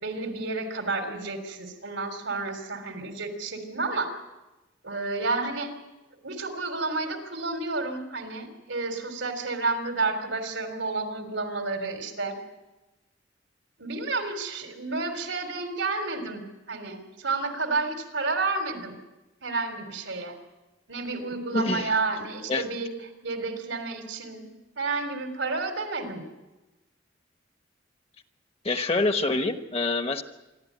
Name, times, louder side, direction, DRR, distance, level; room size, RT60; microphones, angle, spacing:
voice 1, 0.0-4.2 4.8-5.7 6.2-12.4 13.8-19.0 19.4-20.4 20.9-22.9 23.2-24.4 24.8-26.3, right 3 dB, 90° right, 6 dB, 3.4 m, -30 dB
voice 2, 21.5-21.9 22.5-22.7 28.6-30.2, left 2 dB, 30° left, 8 dB, 1.2 m, -26 dB
26.5 x 12.0 x 9.4 m, 1.1 s
head